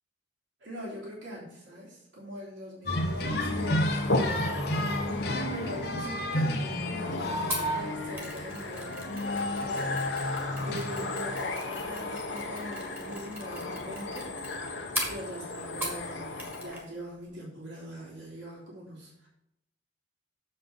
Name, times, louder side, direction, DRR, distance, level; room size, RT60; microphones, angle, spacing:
voice 1, 0.6-4.1 4.8-9.0 9.6-14.3 15.0-19.3, equal, 80° right, -4 dB, 3.1 m, -42 dB
sound 1, 2.9-16.8, left 2 dB, 85° left, 1.2 m, -36 dB
sound 2, 2.9-11.5, left 1 dB, 55° left, 1.1 m, -31 dB
Mechanisms, 7.5-16.1 16.4-16.8 17.1-17.2, right 1 dB, 10° right, 1.8 m, -40 dB
7.5 x 5.4 x 5.4 m, 0.83 s
head